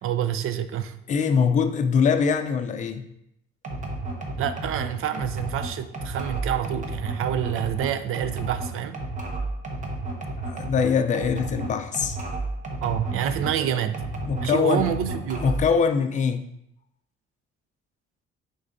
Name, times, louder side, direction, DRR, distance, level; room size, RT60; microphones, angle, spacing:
voice 1, 0.0-1.0 4.4-9.0 12.8-14.1 14.4-15.5, right 10 dB, 85° right, 11 dB, 0.5 m, -27 dB
voice 2, 1.1-3.1 10.4-12.2 13.6-13.7 14.3-14.8 15.4-16.4, left 6 dB, 35° left, 7 dB, 0.4 m, -23 dB
sound 1, 3.6-13.6 13.9-15.7, right 2 dB, 35° right, 0.9 m, -32 dB
9.6 x 3.8 x 2.7 m, 0.77 s
cardioid pair, 175°, 21 cm